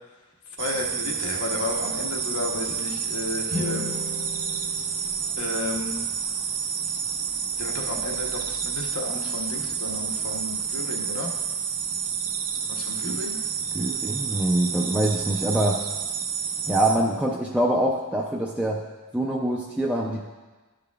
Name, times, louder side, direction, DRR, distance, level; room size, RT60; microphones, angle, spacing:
voice 1, 0.6-3.9 5.4-6.0 7.6-11.3 12.7-13.4, left 3 dB, 75° left, 1 dB, 1.0 m, -33 dB
sound 1, 0.6-17.0, right 7 dB, 90° right, 0.6 m, -29 dB
sound 2, 3.5-6.7, left 3 dB, 35° left, 0.8 m, -37 dB
voice 2, 13.7-15.8 16.7-18.8 19.1-20.2, right 1 dB, 5° right, -3 dB, 0.4 m, -24 dB
11.5 x 4.9 x 2.3 m, 1.3 s
head